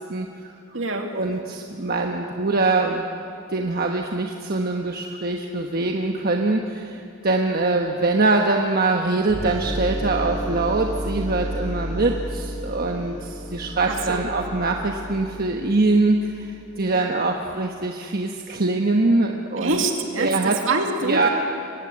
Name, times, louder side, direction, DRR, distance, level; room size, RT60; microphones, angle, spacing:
voice 1, 0.1-0.5 1.1-3.1 3.5-19.8 20.2-20.6 21.0-21.3, right 3 dB, 50° right, 2 dB, 1.2 m, -23 dB
voice 2, 0.7-1.1 13.9-14.2 19.6-21.3, right 3 dB, 70° right, 3 dB, 2.5 m, -25 dB
sound 1, 9.3-16.9, equal, 40° left, 6.5 m, -32 dB
22.5 x 16.5 x 9.9 m, 2.6 s
head